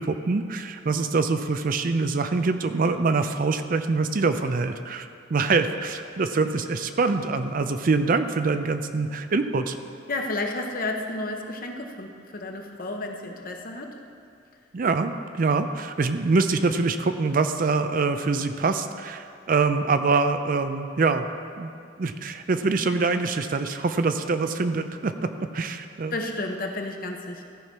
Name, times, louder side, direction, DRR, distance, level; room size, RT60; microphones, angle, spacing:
voice 1, 0.0-9.8 14.7-21.3 21.6-21.7 22.0-26.1, right 4 dB, 45° right, 9 dB, 0.4 m, -24 dB
voice 2, 10.1-14.0 26.1-27.5, left 2 dB, 50° left, 3 dB, 0.9 m, -32 dB
15.0 x 5.8 x 4.6 m, 2.3 s
head